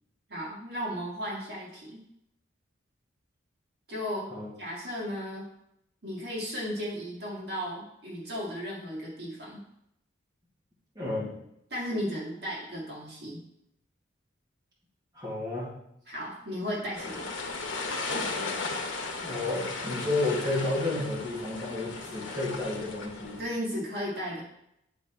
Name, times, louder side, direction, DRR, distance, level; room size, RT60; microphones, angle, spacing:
voice 1, 0.3-2.0 3.9-4.3 4.6-5.5 6.0-9.6 11.7-13.4 16.1-17.3 23.4-24.4, equal, 55° right, -4 dB, 2.2 m, -35 dB
voice 2, 11.0-11.3 15.2-15.7 19.2-23.4, left 2 dB, 20° right, -7 dB, 2.2 m, -31 dB
sound 1, 16.9-23.4, left 3 dB, 70° left, 1.1 m, -35 dB
9.8 x 4.3 x 4.3 m, 0.79 s
head